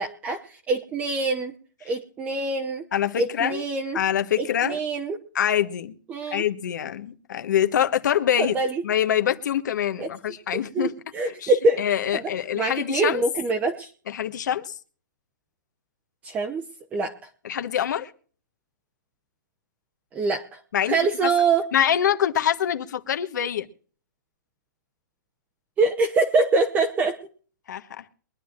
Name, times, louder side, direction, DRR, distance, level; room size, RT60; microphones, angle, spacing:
voice 1, 0.0-1.5 1.8-2.9 3.2-4.0 4.4-5.2 6.1-6.4 8.4-8.8 10.0-10.1 10.5-11.8 12.1-12.2 12.6-13.9 16.2-16.6 16.9-17.1 20.1-20.6 20.9-21.6 25.8-27.2, right 3 dB, 15° right, 0.8 m, -24 dB
voice 2, 2.9-3.6 3.9-4.8 5.3-5.9 6.3-8.6 8.8-10.9 11.3-13.2 14.1-14.7 17.4-18.1 20.7-21.0 21.7-23.7 27.7-28.0, left 10 dB, 65° left, 1.3 m, -25 dB
23.5 x 10.5 x 2.6 m
hypercardioid pair, 160°, 10 cm